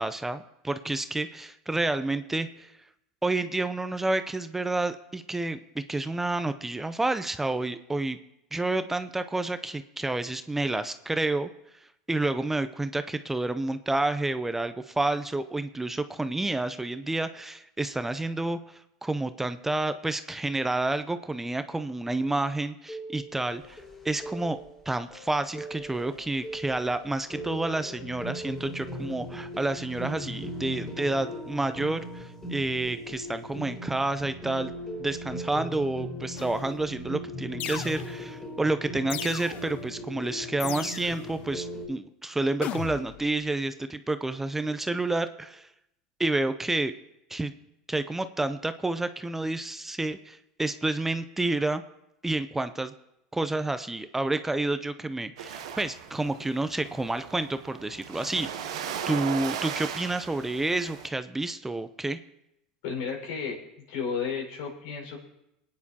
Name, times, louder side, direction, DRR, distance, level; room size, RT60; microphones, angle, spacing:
voice 1, 0.0-2.7 3.2-8.2 8.5-11.5 12.1-24.6 24.9-34.7 35.0-45.7 46.2-46.9 47.3-47.5 47.9-51.8 52.2-52.9 53.3-62.2, right 2 dB, 10° right, 11 dB, 0.6 m, -29 dB
sound 1, 22.9-41.9, equal, 15° left, 4.5 m, -39 dB
sound 2, 36.4-36.8 37.6-38.4 39.1-39.8 40.6-41.3 42.6-43.3, left 14 dB, 55° left, 0.4 m, -37 dB
sound 3, 55.4-61.1, right 8 dB, 90° right, 1.0 m, -37 dB
voice 2, 62.8-63.6 63.9-65.2, left 6 dB, 75° left, 0 dB, 5.1 m, -32 dB
26.0 x 9.6 x 2.9 m, 0.85 s
supercardioid pair, 100°, 3 cm